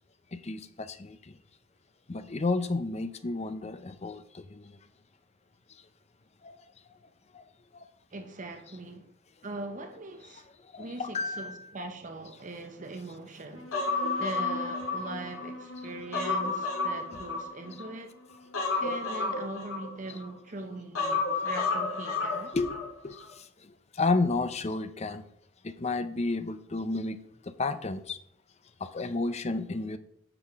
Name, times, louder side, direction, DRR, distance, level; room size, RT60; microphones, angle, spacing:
voice 1, 0.3-1.4 2.1-4.8 6.4-6.6 7.3-7.4 7.7-7.9 10.7-11.7 21.3-21.4 22.5-22.8 23.0-25.3 25.6-28.2 28.8-30.0, left 3 dB, 30° left, 0.6 m, -32 dB
voice 2, 8.1-9.1 9.4-10.5 10.8-13.7 14.2-18.1 18.8-22.5, right 2 dB, 40° right, 0.8 m, -41 dB
sound 1, 13.5-20.5, left 1 dB, 65° left, 1.1 m, -45 dB
Human voice, 13.7-15.5 15.9-17.9 18.5-20.3 20.9-22.9 23.2-23.3, left 4 dB, 85° left, 2.1 m, -31 dB
9.8 x 6.9 x 3.6 m
head